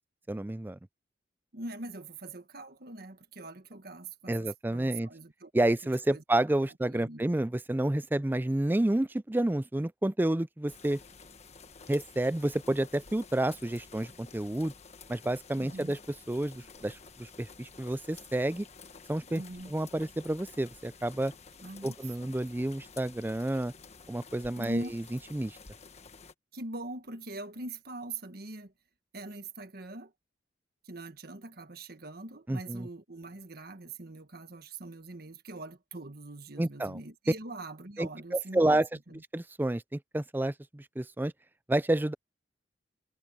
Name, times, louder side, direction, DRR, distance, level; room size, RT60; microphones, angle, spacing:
voice 1, 0.3-0.8 4.3-5.1 5.5-11.0 11.9-14.7 15.1-16.0 16.3-18.7 19.1-19.4 19.7-21.3 21.8-23.7 24.1-25.0 25.3-25.6 32.5-32.9 36.6-37.0 38.0-38.9 39.3-41.3 41.7-42.1, right 1 dB, 10° right, 0.4 m, -30 dB
voice 2, 1.5-6.2 6.7-7.2 15.6-16.0 19.3-19.7 21.6-22.3 24.6-24.9 26.5-28.7 29.1-30.1 30.8-39.2, right 2 dB, 55° right, 1.5 m, -43 dB
sound 1, 10.7-26.3, left 5 dB, 35° left, 1.4 m, -52 dB
head